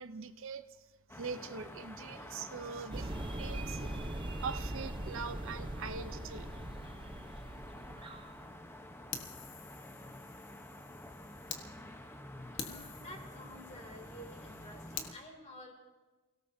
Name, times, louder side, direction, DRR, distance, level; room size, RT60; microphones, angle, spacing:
voice 1, 0.0-3.9 4.4-6.5, right 5 dB, 60° right, 10 dB, 0.7 m, -43 dB
sound 1, 1.1-15.1, left 1 dB, 10° left, 0.9 m, -50 dB
sound 2, 2.9-8.4, right 1 dB, 25° right, 0.7 m, -41 dB
Fire, 9.1-11.6 12.1-12.2 12.6-15.1, left 7 dB, 55° left, 1.4 m, -47 dB
voice 2, 12.5-15.7, equal, 30° left, 2 dB, 2.7 m, -51 dB
29.5 x 17.5 x 2.7 m, 1.3 s
head